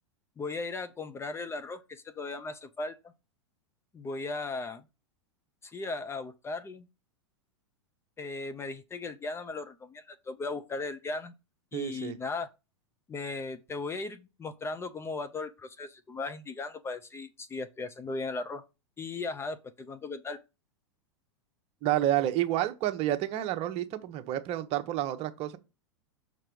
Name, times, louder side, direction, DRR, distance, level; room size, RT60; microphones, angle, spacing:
voice 1, 0.4-3.1 3.9-4.8 5.6-6.9 8.2-11.3 11.7-12.5 13.1-18.6 19.0-20.4, left 3 dB, 15° left, 0.6 m, -37 dB
voice 2, 11.7-12.2 21.8-25.6, right 13 dB, 40° right, 0.9 m, -29 dB
6.0 x 4.4 x 5.3 m
hypercardioid pair, 100°, 15 cm